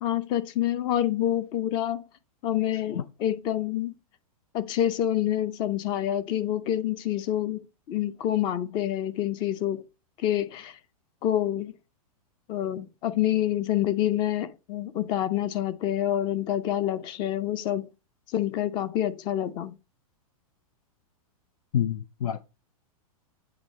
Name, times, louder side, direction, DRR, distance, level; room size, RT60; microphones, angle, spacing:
voice 1, 0.0-2.0 2.4-3.9 4.5-9.8 10.2-10.8 11.2-11.7 12.5-17.8 18.3-19.8, left 12 dB, 25° left, 0.5 m, -27 dB
voice 2, 21.7-22.4, left 9 dB, 70° left, 0.6 m, -27 dB
8.1 x 3.2 x 5.2 m
hypercardioid pair, 155°, 19 cm